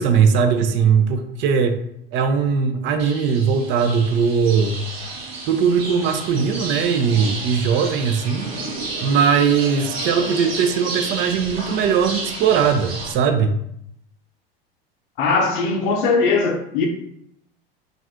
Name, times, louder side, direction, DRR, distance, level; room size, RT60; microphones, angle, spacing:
voice 1, 0.0-1.8 2.1-4.8 5.5-8.5 9.0-13.6, right 6 dB, 40° right, 0.4 m, -19 dB
sound 1, 3.0-13.1, right 3 dB, 80° right, 0.7 m, -31 dB
voice 2, 15.2-16.9, left 4 dB, 55° left, 0.7 m, -19 dB
2.5 x 2.4 x 3.4 m
hypercardioid pair, 80°, 29 cm